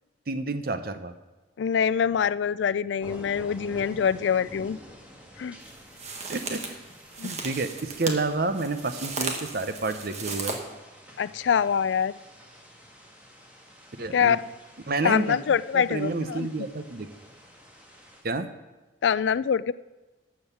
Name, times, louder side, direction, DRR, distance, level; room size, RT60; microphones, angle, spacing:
voice 1, 0.3-1.1 6.3-6.8 7.2-10.6 14.0-14.4 14.9-15.4 15.7-17.1 18.2-18.5, right 3 dB, 55° right, 9 dB, 0.8 m, -29 dB
voice 2, 1.6-4.8 5.4-5.6 7.2-7.4 11.2-12.1 14.1-14.4 15.0-16.5 19.0-19.7, left 7 dB, 75° left, 18 dB, 0.4 m, -24 dB
sound 1, 3.0-18.2, equal, 10° right, 1.8 m, -49 dB
sound 2, 5.6-10.6, right 3 dB, 35° right, 1.4 m, -36 dB
12.0 x 6.4 x 7.3 m, 1.2 s
head